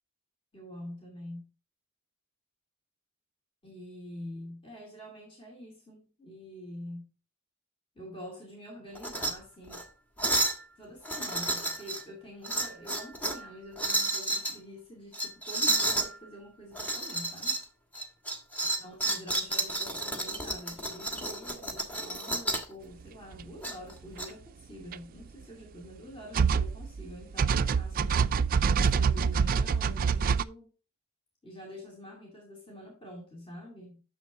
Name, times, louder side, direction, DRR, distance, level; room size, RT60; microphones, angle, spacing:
voice 1, 0.5-1.5 3.6-7.1 7.9-9.9 10.8-17.6 18.8-28.2 28.7-30.7 31.4-34.0, equal, 25° left, 2.4 m, -46 dB
sound 1, 8.9-9.3 9.7-9.8 10.2-10.6 11.0-12.0 12.4-13.4 13.8-14.5 15.1-16.1 16.7-17.6 17.9-22.7 23.6-24.3, right 2 dB, 10° left, 1.4 m, -31 dB
sound 2, 23.3-23.4 24.9-25.0 26.3-27.1 27.4-30.4, right 6 dB, 40° right, 0.3 m, -25 dB
9.9 x 6.8 x 2.5 m
head